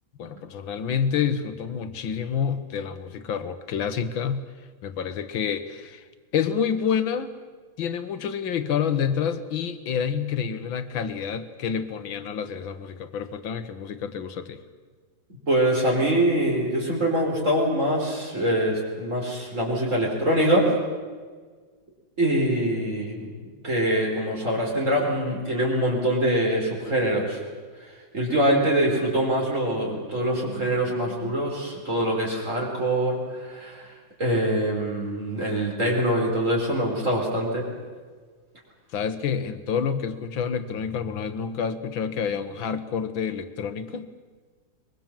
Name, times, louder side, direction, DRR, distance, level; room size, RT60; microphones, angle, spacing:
voice 1, 0.2-4.5 4.8-6.1 6.3-7.3 7.8-14.6 38.9-44.1, left 7 dB, 85° left, 10 dB, 2.0 m, -28 dB
voice 2, 15.5-20.7 22.2-27.4 28.1-33.2 33.5-33.9 34.2-37.7, right 1 dB, 40° right, -2 dB, 4.6 m, -24 dB
23.0 x 22.0 x 7.5 m, 1.5 s
omnidirectional pair, 2.1 m